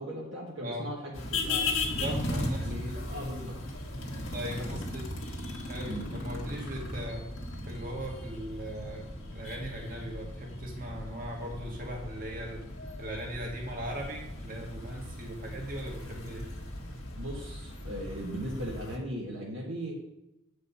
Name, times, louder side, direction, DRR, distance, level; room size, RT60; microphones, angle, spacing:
voice 1, 0.0-1.8 2.6-3.6 4.6-4.7 5.9-6.1 17.1-20.0, equal, 60° right, -3 dB, 1.3 m, -38 dB
sound 1, 1.1-19.0, left 2 dB, 85° left, 1.7 m, -37 dB
voice 2, 1.8-3.1 4.3-5.0 5.7-7.3 7.6-9.0 9.3-12.6 13.0-16.5, equal, 40° right, 0 dB, 1.8 m, -39 dB
8.4 x 5.1 x 5.4 m, 0.89 s
head